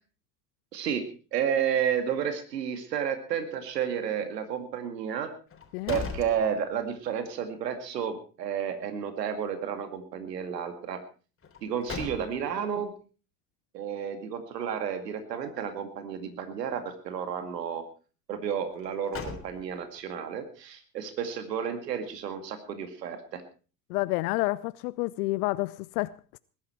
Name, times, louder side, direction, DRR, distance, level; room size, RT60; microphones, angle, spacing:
voice 1, 0.7-1.1 1.3-5.3 5.9-11.0 11.6-12.9 13.7-17.8 18.3-23.4, right 8 dB, 85° right, 2.2 m, -31 dB
sound 1, 5.5-7.1 7.5-7.6 11.4-12.7 18.7-20.0, left 5 dB, 25° left, 3.6 m, -39 dB
voice 2, 23.9-26.4, left 20 dB, 70° left, 0.7 m, -29 dB
20.5 x 11.5 x 4.4 m
hypercardioid pair, 75°, 48 cm